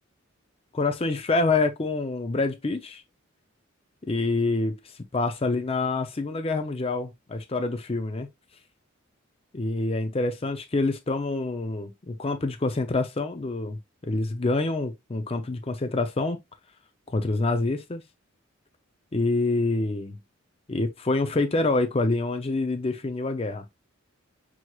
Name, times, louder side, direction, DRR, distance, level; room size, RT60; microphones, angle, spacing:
voice 1, 0.7-3.0 4.1-8.3 9.5-13.8 14.1-16.4 17.1-18.0 19.1-20.2 20.7-23.6, left 3 dB, 30° left, 0.5 m, -26 dB
6.1 x 3.0 x 2.3 m
head